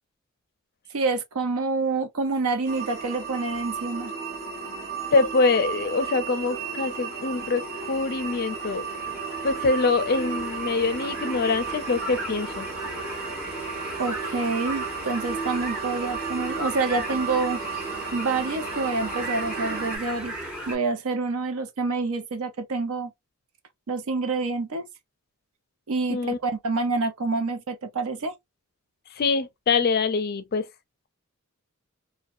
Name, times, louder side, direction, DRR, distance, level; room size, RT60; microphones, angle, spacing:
voice 1, 0.9-4.1 14.0-17.6 18.1-20.3 20.7-23.1 23.9-24.9 25.9-28.3, right 3 dB, 70° right, 0.5 m, -27 dB
sound 1, 2.6-20.0, right 5 dB, 45° right, 1.4 m, -34 dB
voice 2, 5.1-7.6 7.9-8.9 9.4-12.7 26.1-26.4 29.2-30.6, left 4 dB, 45° left, 0.4 m, -24 dB
sound 2, 5.7-20.8, equal, 5° right, 1.4 m, -38 dB
2.7 x 2.1 x 2.4 m
head